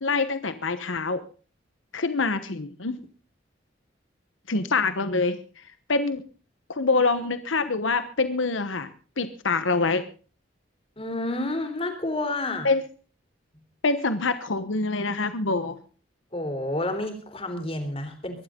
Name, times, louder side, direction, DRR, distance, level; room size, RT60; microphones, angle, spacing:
voice 1, 0.0-1.2 1.9-3.0 4.5-6.2 6.7-8.9 9.2-10.0 12.6-12.8 13.8-15.8, left 3 dB, 85° left, 11 dB, 1.2 m, -25 dB
voice 2, 11.0-12.7 16.3-18.4, left 1 dB, 30° left, 5 dB, 3.7 m, -30 dB
23.0 x 11.5 x 3.8 m, 0.39 s
head